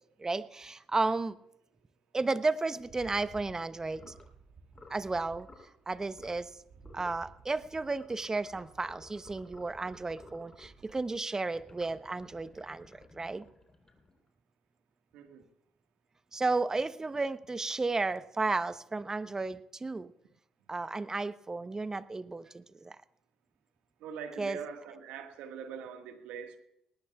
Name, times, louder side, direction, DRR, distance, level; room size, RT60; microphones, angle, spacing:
voice 1, 0.2-1.4 2.1-4.1 4.9-5.5 5.9-6.6 6.9-13.5 16.3-20.1 20.7-23.0 24.4-24.6, right 3 dB, 25° right, 14 dB, 0.8 m, -33 dB
Rattle, 2.7-11.2, right 5 dB, 60° right, 2.0 m, -56 dB
sound 1, 3.9-4.3 4.7-5.0 5.4-5.7 6.1-6.5 6.8-7.2 7.9-10.8 11.5-14.3, left 3 dB, 30° left, 3.5 m, -56 dB
voice 2, 24.0-26.6, right 7 dB, 75° right, 5 dB, 1.6 m, -43 dB
20.0 x 18.5 x 2.4 m, 0.80 s
hypercardioid pair, 50°, 2 cm